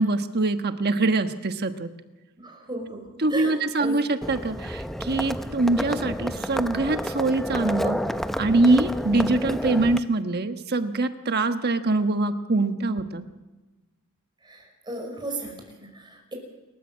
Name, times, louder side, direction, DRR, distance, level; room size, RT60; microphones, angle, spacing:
voice 1, 0.0-1.9 3.2-8.0 8.4-13.2, right 2 dB, 50° right, 8 dB, 1.3 m, -23 dB
voice 2, 2.4-4.0 14.4-16.3, right 2 dB, 20° right, 3 dB, 5.3 m, -35 dB
Livestock farm animals working animals, 4.2-10.0, equal, ahead, 0.7 m, -30 dB
29.0 x 13.5 x 7.4 m, 1.2 s
head